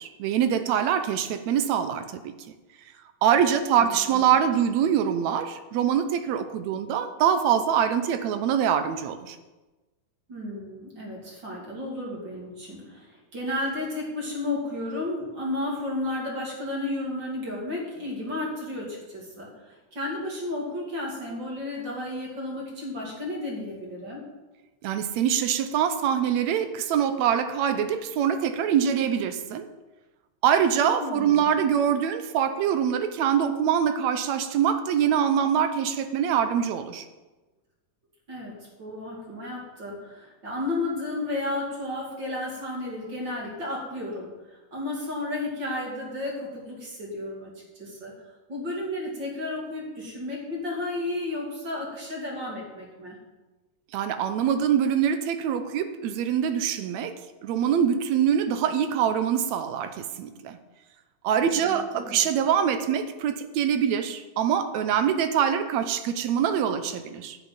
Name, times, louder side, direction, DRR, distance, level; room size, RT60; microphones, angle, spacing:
voice 1, 0.0-2.3 3.2-9.4 24.8-29.7 30.4-37.1 53.9-57.2 57.4-60.6 61.2-67.4, right 8 dB, 70° right, 10 dB, 1.9 m, -24 dB
voice 2, 3.7-4.3 10.3-24.2 31.0-31.7 38.3-48.1 48.5-53.2 61.5-62.3, left 2 dB, 35° right, -3 dB, 3.0 m, -33 dB
11.0 x 6.0 x 8.9 m, 1.1 s
omnidirectional pair, 3.6 m